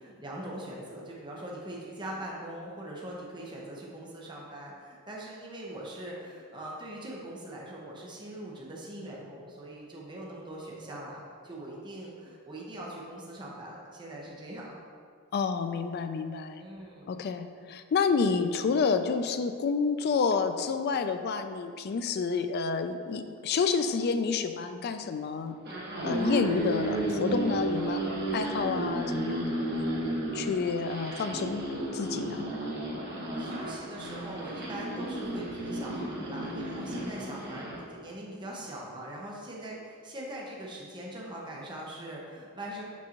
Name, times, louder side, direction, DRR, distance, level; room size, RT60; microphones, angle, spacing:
voice 1, 0.0-14.8 16.6-17.2 33.0-42.8, right 1 dB, 20° right, -4 dB, 0.7 m, -42 dB
voice 2, 15.3-16.6 17.1-25.6 26.0-28.0 28.3-29.9 30.3-31.6 31.9-32.5, left 5 dB, 50° left, 9 dB, 0.3 m, -29 dB
sound 1, 25.5-37.8, right 1 dB, 50° right, 1.1 m, -33 dB
6.1 x 5.4 x 2.9 m, 2.2 s
head